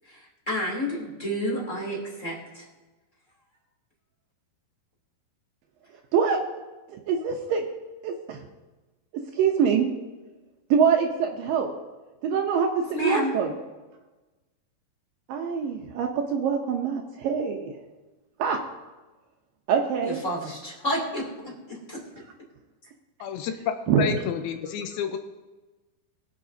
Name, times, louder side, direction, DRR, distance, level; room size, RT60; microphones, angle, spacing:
voice 1, 0.1-2.6 12.9-13.3 20.0-22.0, equal, 20° left, -3 dB, 2.6 m, -30 dB
voice 2, 6.9-7.7 8.0-8.4 9.1-9.9 10.7-11.7 12.2-13.5 15.3-17.7 18.4-18.6 19.7-20.2 23.9-24.2, right 7 dB, 75° right, 2 dB, 2.3 m, -24 dB
voice 3, 23.2-23.5 24.0-25.2, left 7 dB, 85° left, 6 dB, 2.5 m, -30 dB
21.5 x 7.8 x 2.7 m, 1.2 s
omnidirectional pair, 4.5 m